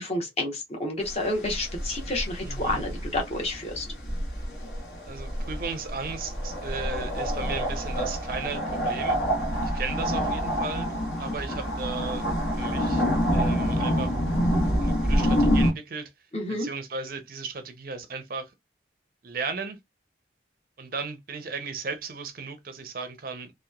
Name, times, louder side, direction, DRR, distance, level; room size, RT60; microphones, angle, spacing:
voice 1, 0.0-3.9 16.3-16.7, left 1 dB, 35° left, 0.8 m, -30 dB
sound 1, 1.0-15.7, equal, 65° left, 1.1 m, -27 dB
voice 2, 2.4-2.9 5.0-9.2 9.6-10.9 11.2-12.3 12.6-13.0 13.3-14.1 14.8-16.1 16.5-18.5 19.2-19.8 20.8-23.5, right 4 dB, 50° right, 0.5 m, -35 dB
2.8 x 2.1 x 2.2 m
head